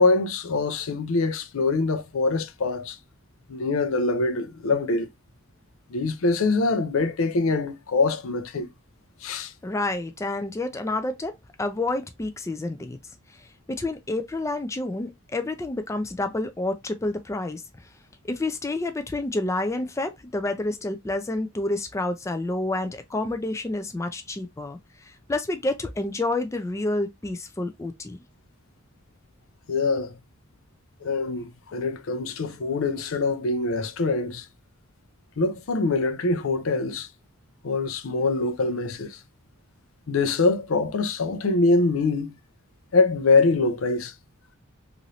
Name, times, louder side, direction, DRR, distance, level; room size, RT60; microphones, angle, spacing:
voice 1, 0.0-3.0 3.5-5.1 5.9-8.7 9.2-9.5 29.7-30.1 31.0-34.5 35.4-37.1 37.6-39.2 40.1-42.4 42.9-44.1, left 3 dB, 90° left, 0.5 m, -24 dB
voice 2, 9.6-11.3 11.6-13.0 13.3-17.9 18.2-28.2, left 2 dB, 15° left, 0.3 m, -29 dB
3.0 x 2.6 x 2.7 m
head